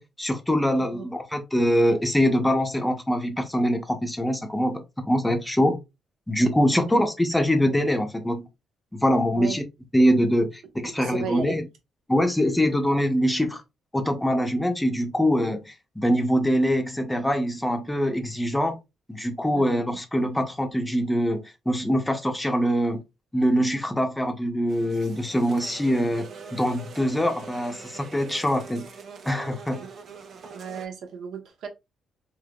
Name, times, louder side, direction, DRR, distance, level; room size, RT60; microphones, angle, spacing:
voice 1, 0.0-5.8 6.3-8.5 8.9-9.6 9.9-11.6 12.1-13.6 13.9-18.8 19.1-23.0 23.3-28.9 29.2-29.8, equal, 10° left, 0.6 m, -24 dB
voice 2, 11.0-11.6 19.5-19.7 29.8-29.9 30.5-31.7, right 6 dB, 80° right, 1.0 m, -35 dB
sound 1, 24.7-30.9, right 6 dB, 60° right, 0.7 m, -43 dB
3.5 x 3.1 x 2.3 m
cardioid pair, 90°, 0 cm